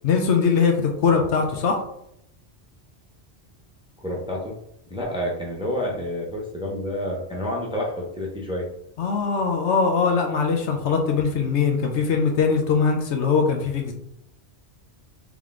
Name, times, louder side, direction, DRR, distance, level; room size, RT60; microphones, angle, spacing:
voice 1, 0.0-1.8 9.0-13.9, left 5 dB, 80° left, 3 dB, 1.0 m, -21 dB
voice 2, 4.0-4.5 4.9-8.6, left 1 dB, 5° right, -2 dB, 0.7 m, -29 dB
3.8 x 3.0 x 3.7 m, 0.76 s
omnidirectional pair, 1.2 m